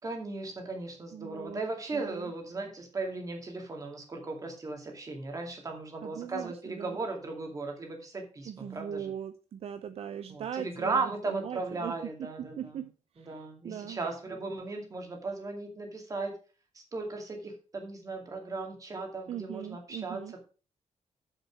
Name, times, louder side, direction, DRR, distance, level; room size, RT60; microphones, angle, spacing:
voice 1, 0.0-9.1 10.3-12.8 13.2-16.3 16.7-20.4, right 3 dB, 30° right, 2.3 m, -37 dB
voice 2, 1.1-1.6 1.9-2.3 6.0-7.0 8.5-11.9 12.2-14.0 19.3-20.3, right 9 dB, 60° right, 0.6 m, -40 dB
7.4 x 6.8 x 5.9 m
wide cardioid pair, 165°, 12 cm